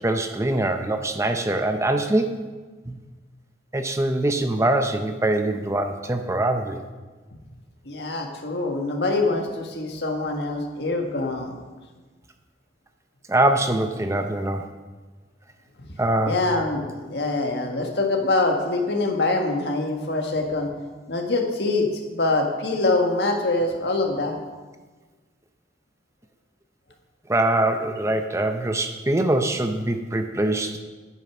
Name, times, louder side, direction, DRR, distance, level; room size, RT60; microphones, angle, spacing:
voice 1, 0.0-2.4 2.9-3.0 3.7-6.8 13.3-14.6 16.0-16.4 27.3-30.8, right 1 dB, 15° right, 6 dB, 0.6 m, -23 dB
voice 2, 7.8-11.6 15.8-15.9 16.3-20.7 21.1-24.4, left 2 dB, 65° left, 3 dB, 1.6 m, -24 dB
9.2 x 8.8 x 6.1 m, 1.3 s
head